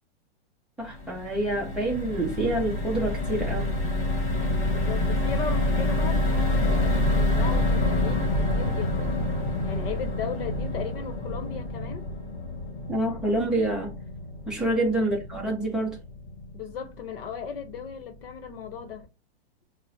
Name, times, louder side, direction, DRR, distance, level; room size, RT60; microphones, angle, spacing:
sound 1, 0.8-17.1 17.5-17.6 17.9-18.1, left 1 dB, 25° left, 1.4 m, -27 dB
voice 1, 0.8-3.8 12.9-14.0 14.5-16.0, right 1 dB, ahead, 0.5 m, -27 dB
voice 2, 4.7-9.2 9.6-12.0 14.7-15.0 16.5-19.1, left 6 dB, 60° left, 0.8 m, -37 dB
6.0 x 2.0 x 2.7 m
hypercardioid pair, 160°, 32 cm